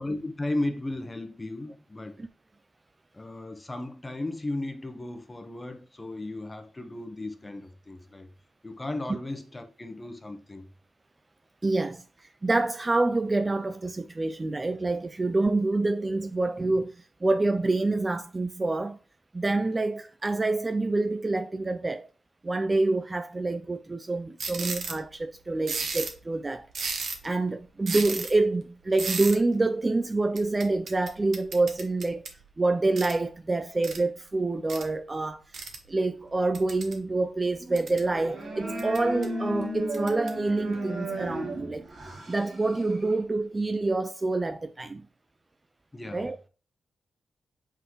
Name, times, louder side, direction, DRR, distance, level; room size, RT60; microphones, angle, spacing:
voice 1, 0.0-2.2 3.1-8.3 8.6-10.7 45.9-46.3, left 2 dB, 20° left, 1.0 m, -35 dB
voice 2, 11.6-19.0 19.3-22.1 22.4-32.2 32.6-35.4 35.9-41.8 42.3-45.0 46.1-46.4, right 2 dB, 20° right, 0.3 m, -27 dB
sound 1, 24.4-25.0 25.7-26.2 26.7-27.3 27.9-28.3 29.0-29.4 30.4-32.4 33.0-33.2 33.8-34.0 34.7-34.8 35.5-35.8 36.5-37.0 37.5-38.1 38.8-39.2 39.9-40.3, right 4 dB, 65° right, 1.3 m, -34 dB
sound 2, 38.0-43.2, right 1 dB, 50° right, 3.5 m, -35 dB
8.0 x 3.9 x 3.1 m
wide cardioid pair, 130°, 0 cm